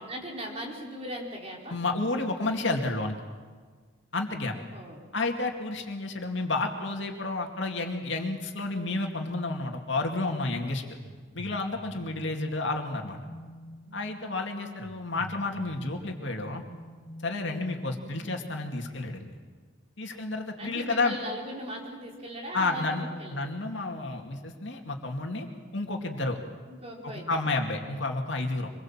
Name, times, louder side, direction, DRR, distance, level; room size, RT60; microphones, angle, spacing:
voice 1, 0.0-1.8 4.5-5.1 20.6-23.5 26.7-27.5, equal, 30° right, -2 dB, 4.3 m, -39 dB
voice 2, 1.7-3.2 4.1-4.5 5.1-10.8 11.3-13.2 13.9-16.6 17.2-19.4 20.0-21.2 22.5-25.5 25.7-26.4 27.0-28.7, left 2 dB, 70° left, 3 dB, 2.4 m, -31 dB
sound 1, 11.0-18.6, equal, 25° left, 3.9 m, -47 dB
25.5 x 21.5 x 7.4 m, 1.5 s
head